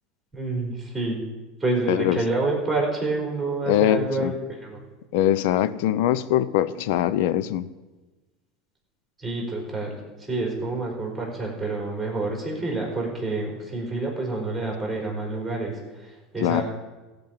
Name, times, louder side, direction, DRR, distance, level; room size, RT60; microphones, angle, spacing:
voice 1, 0.3-1.3 1.6-4.8 9.2-16.6, right 2 dB, 5° right, -1 dB, 4.4 m, -28 dB
voice 2, 1.9-2.2 3.7-4.3 5.1-7.6 16.4-16.6, left 12 dB, 75° left, 16 dB, 0.6 m, -22 dB
15.0 x 5.3 x 8.9 m, 1.2 s
supercardioid pair, 120°, 0 cm